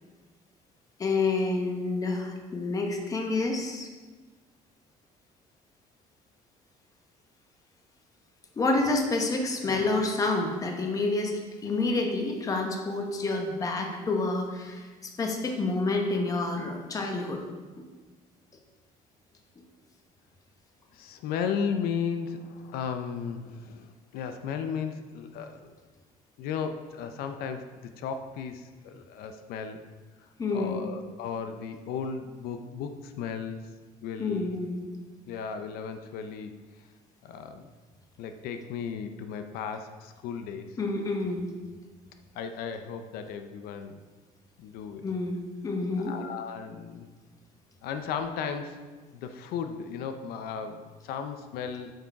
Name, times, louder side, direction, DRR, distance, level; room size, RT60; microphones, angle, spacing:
voice 1, 1.0-3.9 8.6-17.4 30.4-30.9 34.2-34.8 40.8-41.5 45.0-45.4 45.6-46.1, left 3 dB, 20° left, 3 dB, 1.1 m, -28 dB
voice 2, 20.9-25.7 26.4-27.6 28.0-29.8 30.5-33.6 34.0-34.6 35.3-36.5 37.2-37.7 38.2-40.7 42.3-43.9 44.6-45.0 46.0-47.1 47.8-48.8 49.1-51.9, left 6 dB, 90° left, 7 dB, 0.7 m, -35 dB
8.5 x 6.6 x 4.7 m, 1.3 s
cardioid pair, 170°, 15 cm